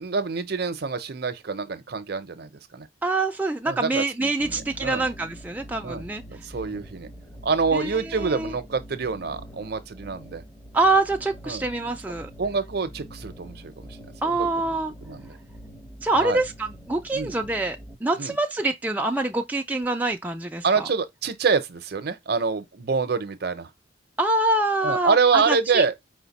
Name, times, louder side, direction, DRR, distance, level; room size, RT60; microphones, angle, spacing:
voice 1, 0.0-2.9 3.7-5.1 5.8-7.1 7.4-10.4 11.5-11.7 12.4-14.0 14.2-14.5 15.0-15.3 16.2-16.4 17.1-17.3 18.2-18.3 20.6-23.7 24.8-26.1, right 5 dB, 55° right, 0.6 m, -26 dB
voice 2, 3.0-6.2 7.7-8.5 10.7-12.3 14.2-14.9 16.0-20.9 24.2-25.8, right 2 dB, 10° right, 0.3 m, -25 dB
sound 1, 4.4-18.0, equal, 20° left, 0.8 m, -44 dB
5.0 x 2.1 x 4.0 m
head